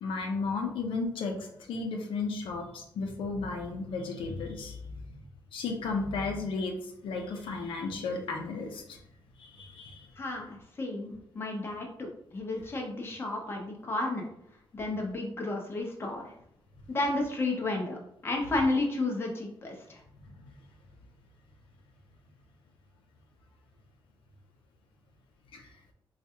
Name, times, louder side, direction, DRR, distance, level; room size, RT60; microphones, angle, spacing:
voice 1, 0.0-4.9 5.5-9.0 9.4-10.1 20.2-20.6 25.5-25.7, left 4 dB, 85° left, 3 dB, 0.6 m, -34 dB
voice 2, 10.2-14.3 14.7-16.3 16.9-18.0 18.2-20.0, left 2 dB, 30° left, 0 dB, 0.7 m, -32 dB
4.5 x 2.4 x 2.8 m, 0.74 s
wide cardioid pair, 145°, 9 cm